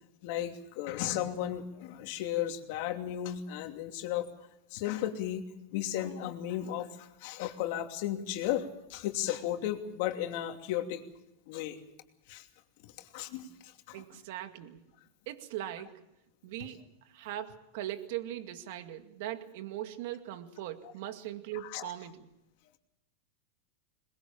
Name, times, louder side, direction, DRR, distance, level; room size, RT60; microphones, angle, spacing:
voice 1, 0.2-4.3 4.7-5.4 5.7-11.0 11.5-11.8 12.3-12.5 12.8-14.0 21.6-21.9, left 12 dB, 60° left, 2.8 m, -35 dB
voice 2, 13.9-14.8 15.3-16.0 16.4-22.3, right 13 dB, 60° right, 2.1 m, -40 dB
21.5 x 21.0 x 7.4 m
supercardioid pair, 135°, 0 cm